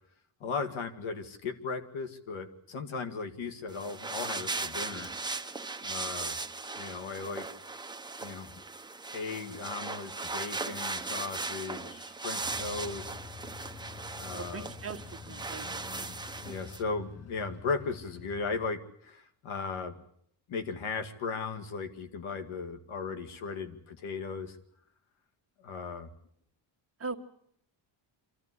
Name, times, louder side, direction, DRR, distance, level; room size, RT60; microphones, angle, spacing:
voice 1, 0.4-5.1 5.8-6.4 6.8-7.5 8.2-8.5 9.1-13.1 14.1-14.7 15.6-20.0 20.5-24.6 25.6-26.1, left 4 dB, 80° left, 9 dB, 2.2 m, -37 dB
sound 1, 3.7-16.8, right 3 dB, 10° right, 0.8 m, -38 dB
sound 2, 12.4-18.7, left 6 dB, 30° left, 1.3 m, -48 dB
voice 2, 14.3-15.8 27.0-27.2, right 4 dB, 30° right, 5 dB, 1.5 m, -40 dB
25.5 x 14.5 x 9.8 m, 0.70 s
cardioid pair, 130°, 48 cm